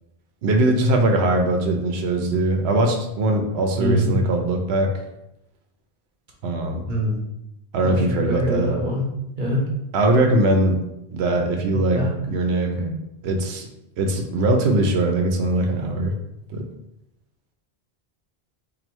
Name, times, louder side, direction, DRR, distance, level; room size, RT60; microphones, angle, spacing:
voice 1, 0.4-4.9 6.4-6.8 7.7-8.7 9.9-10.8 11.1-12.0 12.3-12.8 13.2-13.7 14.0-16.1 16.5-16.6, right 2 dB, 80° right, 3 dB, 0.9 m, -21 dB
voice 2, 3.8-4.2 6.9-7.2 7.8-9.1 9.4-9.6 11.9-12.1 12.8-12.9, equal, 50° right, -2 dB, 1.0 m, -24 dB
3.1 x 2.6 x 4.4 m, 0.85 s
omnidirectional pair, 1.1 m